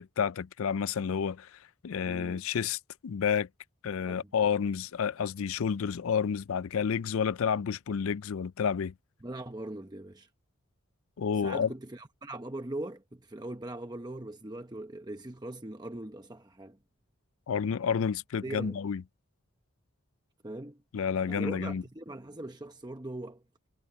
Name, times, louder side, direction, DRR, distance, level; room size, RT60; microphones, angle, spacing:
voice 1, 0.0-3.5 3.8-8.9 11.2-11.7 17.5-19.0 20.9-21.8, left 7 dB, 70° left, 0.4 m, -30 dB
voice 2, 2.0-2.4 4.1-4.3 9.2-10.3 11.4-16.8 18.4-18.8 20.4-20.8 21.3-23.4, right 1 dB, 20° right, 0.9 m, -41 dB
head